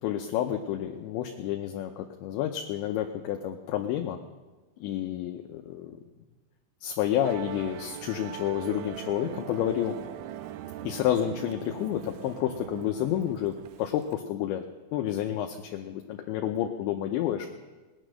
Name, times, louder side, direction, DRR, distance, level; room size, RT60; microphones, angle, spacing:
voice 1, 0.0-4.2 4.8-6.0 6.8-9.9 10.8-14.6 14.9-17.5, left 11 dB, 80° left, 4 dB, 2.8 m, -30 dB
Musical instrument, 7.2-14.2, right 12 dB, 80° right, 2.9 m, -41 dB
18.5 x 9.9 x 6.4 m, 1.2 s
omnidirectional pair, 5.7 m